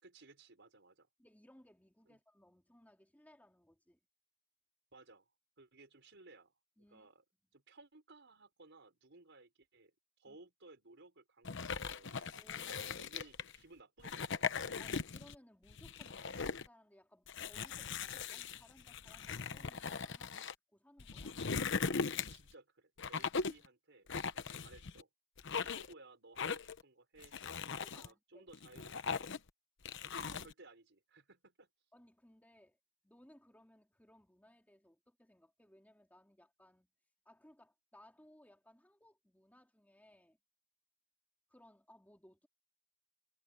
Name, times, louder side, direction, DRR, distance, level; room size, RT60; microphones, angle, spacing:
voice 1, 0.0-1.1 2.1-2.2 4.9-5.3 5.6-6.6 6.9-7.2 7.5-12.4 12.9-14.8 22.3-24.1 24.3-25.1 25.5-27.4 27.9-29.4 30.0-31.7, right 2 dB, 60° right, 5.6 m, -60 dB
voice 2, 1.2-4.0 6.8-7.1 10.3-10.4 12.3-13.1 14.7-16.4 16.7-21.4 27.7-28.5 31.9-32.8 33.0-36.9 37.2-40.4 41.5-42.5, left 1 dB, 10° left, 3.2 m, -64 dB
sound 1, 11.4-13.6 14.0-15.4 15.7-16.7 17.3-20.5 21.0-22.5 23.0-23.7 24.1-25.0 25.4-25.9 26.4-26.8 27.2-28.1 28.5-29.5 29.9-30.5, left 5 dB, 65° left, 1.0 m, -39 dB
head